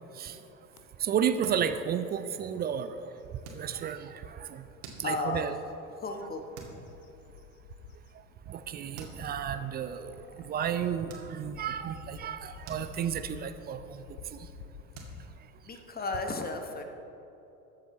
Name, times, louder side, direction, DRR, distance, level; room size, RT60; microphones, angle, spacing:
sound 1, 0.7-0.9 1.4-1.6 2.0-3.5 4.0-4.1 5.9-15.2, left 6 dB, 65° left, 1.0 m, -51 dB
voice 1, 1.0-3.1 3.5-4.6 5.0-5.5 8.5-10.2 10.5-14.0 14.3-14.5, right 8 dB, 20° right, 10 dB, 0.4 m, -32 dB
sound 2, 1.4-2.0 2.4-2.7 3.4-4.1 4.6-5.5 6.0-6.3 6.5-6.9 7.3-7.4 8.5-8.6 8.9-9.3 10.0-10.1 11.1-11.7 12.1-13.4 13.7-14.0 14.3-14.4 14.9-16.3, right 4 dB, 55° right, 2.1 m, -49 dB
voice 2, 5.0-5.5 6.0-6.4 15.6-16.8, left 3 dB, 20° left, 5 dB, 1.2 m, -34 dB
20.5 x 7.5 x 3.1 m, 3.0 s
figure-of-eight pair, 70°, 47 cm